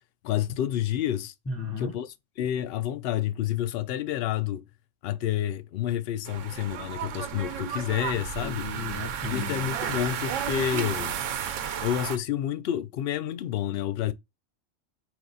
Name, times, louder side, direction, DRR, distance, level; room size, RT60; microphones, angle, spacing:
voice 1, 0.2-1.3 1.8-2.1 2.4-4.6 5.0-8.7 9.3-11.2 11.8-14.1, left 11 dB, 65° left, 0.7 m, -29 dB
voice 2, 1.5-2.0 8.4-10.1, left 3 dB, 20° left, 0.4 m, -35 dB
sound 1, 6.3-12.2, right 8 dB, 85° right, 1.0 m, -33 dB
4.8 x 2.3 x 3.8 m
omnidirectional pair, 1.3 m